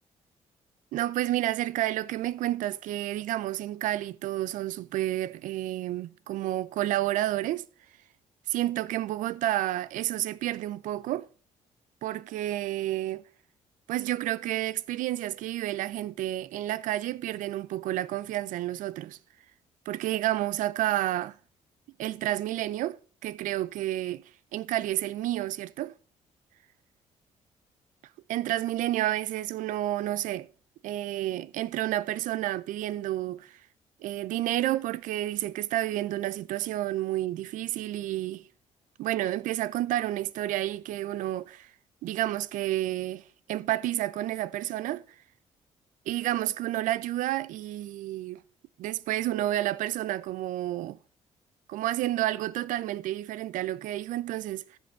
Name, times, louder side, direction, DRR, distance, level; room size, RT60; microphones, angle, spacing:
voice 1, 0.9-7.6 8.5-11.3 12.0-13.3 13.9-19.2 19.9-21.4 22.0-25.9 28.3-30.5 30.8-33.6 34.0-38.4 39.0-41.7 42.0-45.0 46.1-48.4 48.8-51.0 51.7-54.7, right 14 dB, 80° right, 0.5 m, -30 dB
14.0 x 5.4 x 5.6 m
supercardioid pair, 70°, 13 cm